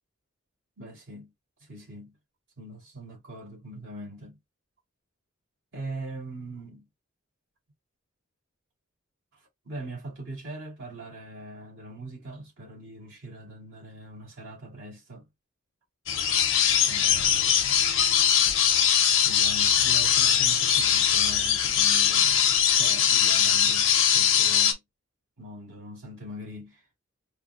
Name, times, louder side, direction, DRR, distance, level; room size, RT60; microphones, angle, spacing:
voice 1, 0.8-1.3 1.7-2.1 2.6-4.4 5.7-6.8 9.6-15.2 16.9-17.6 19.2-24.8 25.4-27.0, right 1 dB, 65° right, 2.4 m, -41 dB
sound 1, 16.1-24.7, left 8 dB, 65° left, 0.7 m, -21 dB
4.9 x 2.1 x 2.4 m
head